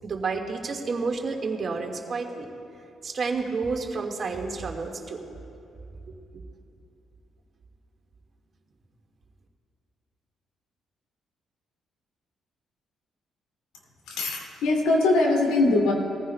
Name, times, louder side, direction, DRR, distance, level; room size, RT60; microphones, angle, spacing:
voice 1, 0.0-2.5 3.0-5.2, right 4 dB, 50° right, 3 dB, 1.6 m, -30 dB
voice 2, 14.1-15.9, left 2 dB, 75° left, -1 dB, 2.3 m, -22 dB
20.5 x 14.5 x 2.2 m, 2.8 s
hypercardioid pair, 50°, 0 cm